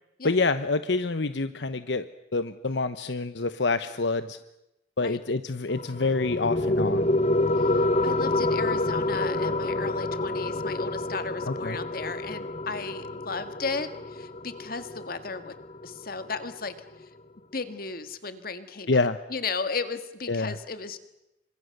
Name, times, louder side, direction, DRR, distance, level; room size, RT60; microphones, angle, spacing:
voice 1, 0.2-2.1 2.3-4.4 5.0-7.1 11.5-11.8 18.9-19.2 20.3-20.6, left 3 dB, 75° left, 12 dB, 0.9 m, -27 dB
sound 1, 5.7-16.7, left 2 dB, 35° left, 1.0 m, -28 dB
voice 2, 7.6-15.5 15.8-16.7 17.5-19.0 19.3-21.0, left 4 dB, 55° left, 10 dB, 1.9 m, -35 dB
Chink clink, 9.1-13.6, left 3 dB, 75° right, 6.1 m, -48 dB
29.5 x 25.5 x 6.7 m, 0.90 s
head